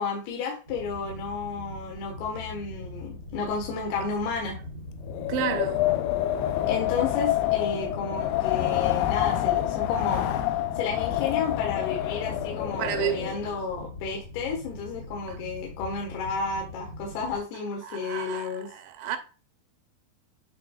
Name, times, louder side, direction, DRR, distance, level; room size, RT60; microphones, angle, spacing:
voice 1, 0.0-4.5 6.7-10.3 10.7-18.7, left 5 dB, 70° left, 3.2 m, -32 dB
sound 1, 0.7-17.4, left 1 dB, 30° left, 2.0 m, -42 dB
Wind, 5.0-13.5, left 14 dB, 85° left, 3.0 m, -27 dB
voice 2, 5.3-5.9 12.8-13.6 15.3-15.4 17.8-19.2, right 10 dB, 85° right, 3.2 m, -31 dB
9.4 x 4.7 x 2.4 m
omnidirectional pair, 5.0 m